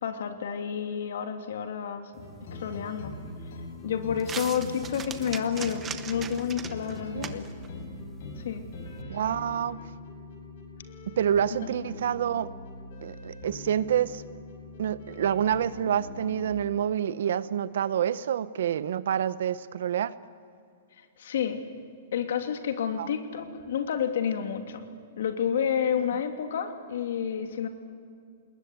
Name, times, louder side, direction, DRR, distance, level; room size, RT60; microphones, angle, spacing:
voice 1, 0.0-2.1 2.5-3.2 3.8-7.5 8.4-8.7 21.0-21.6 22.1-24.8 25.2-27.7, left 8 dB, 65° left, 7 dB, 2.6 m, -30 dB
sound 1, 2.1-9.0, right 7 dB, 10° right, 0.9 m, -43 dB
sound 2, 2.2-16.5, left 2 dB, 50° left, 5.4 m, -42 dB
voice 2, 9.1-9.8 11.1-12.5 13.0-14.2 14.8-20.1 23.0-23.1, right 9 dB, 65° right, 16 dB, 0.9 m, -27 dB
29.5 x 20.0 x 9.5 m, 2.3 s
hypercardioid pair, 175°, 0 cm